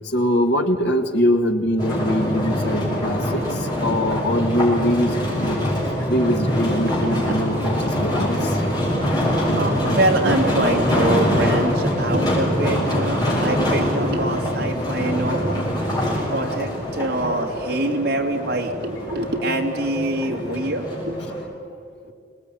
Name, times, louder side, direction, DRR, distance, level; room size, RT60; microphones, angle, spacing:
voice 1, 0.0-5.6 6.1-8.6 9.5-9.6, equal, 60° left, 4 dB, 2.1 m, -22 dB
sound 1, 1.8-21.4, equal, 20° left, 6.8 m, -24 dB
voice 2, 6.9-7.4 7.9-9.0 9.3-15.6 16.3-21.4, right 1 dB, 60° right, 1 dB, 2.8 m, -25 dB
24.5 x 19.0 x 9.5 m, 2.2 s
head